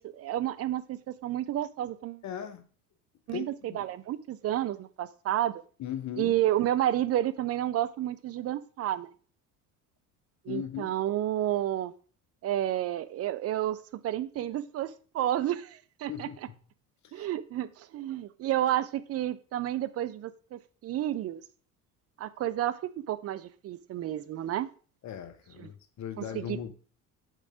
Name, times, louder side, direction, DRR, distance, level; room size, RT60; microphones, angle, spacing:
voice 1, 0.0-2.2 3.3-5.5 6.2-9.1 10.5-11.9 12.4-13.8 14.0-16.3 17.1-21.4 22.2-24.7 25.6-25.7 26.2-26.6, right 12 dB, 30° right, 13 dB, 0.5 m, -31 dB
voice 2, 2.2-2.6 3.3-3.8 5.8-6.3 10.5-10.9 16.1-16.4 17.2-17.3 25.0-26.7, left 9 dB, 35° left, 10 dB, 0.8 m, -38 dB
5.1 x 4.0 x 4.9 m, 0.40 s
figure-of-eight pair, 60°, 48 cm